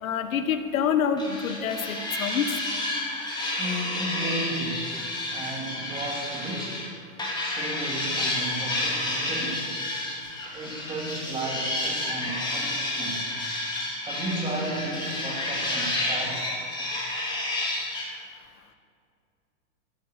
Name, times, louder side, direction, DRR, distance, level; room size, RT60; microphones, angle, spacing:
voice 1, 0.0-2.5, left 7 dB, 75° left, 9 dB, 1.4 m, -26 dB
sound 1, 1.2-6.9 7.2-18.1, left 1 dB, 10° left, 3.2 m, -30 dB
voice 2, 3.6-5.0 5.3-6.8 7.4-9.8 10.5-13.3 14.0-16.6, right 2 dB, 10° right, -1 dB, 2.6 m, -34 dB
13.0 x 10.5 x 8.2 m, 2.4 s
hypercardioid pair, 155°, 41 cm